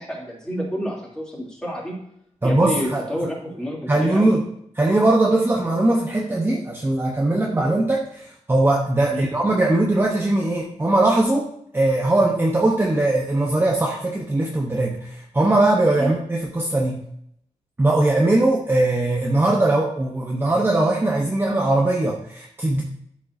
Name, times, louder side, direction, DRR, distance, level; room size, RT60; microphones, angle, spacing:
voice 1, 0.0-2.0 2.4-4.4 9.1-9.3 16.0-16.1, equal, 5° left, -4 dB, 2.9 m, -29 dB
voice 2, 2.4-3.0 3.9-4.4 4.8-11.5 11.7-17.0 17.8-22.8, right 2 dB, 20° right, -1 dB, 1.0 m, -20 dB
12.5 x 7.4 x 2.7 m, 0.72 s
wide cardioid pair, 170°, 13 cm